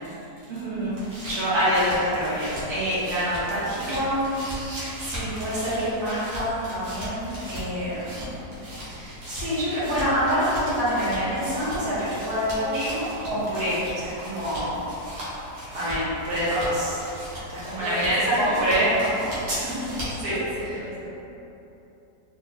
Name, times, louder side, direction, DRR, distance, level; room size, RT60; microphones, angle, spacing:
voice 1, 0.5-1.0 17.8-19.0 19.9-21.1, right 2 dB, 35° right, -10 dB, 0.9 m, -34 dB
sound 1, 0.7-20.3, equal, 85° right, 1.8 m, -38 dB
voice 2, 1.2-8.2 8.9-14.8 15.3-17.0 17.5-19.9 20.2-20.4, equal, 70° right, -11 dB, 1.7 m, -26 dB
4.1 x 2.2 x 3.8 m, 3.0 s
omnidirectional pair, 1.8 m